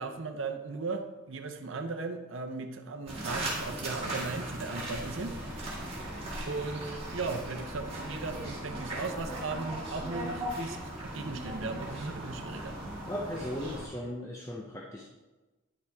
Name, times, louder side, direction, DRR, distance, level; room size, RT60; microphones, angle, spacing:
voice 1, 0.0-5.4 6.5-12.8, right 3 dB, 70° right, 6 dB, 0.7 m, -37 dB
sound 1, 3.1-13.9, right 1 dB, 30° right, 1.9 m, -38 dB
voice 2, 13.1-15.0, left 1 dB, 15° left, -1 dB, 0.6 m, -37 dB
9.4 x 5.7 x 3.5 m, 1.1 s
head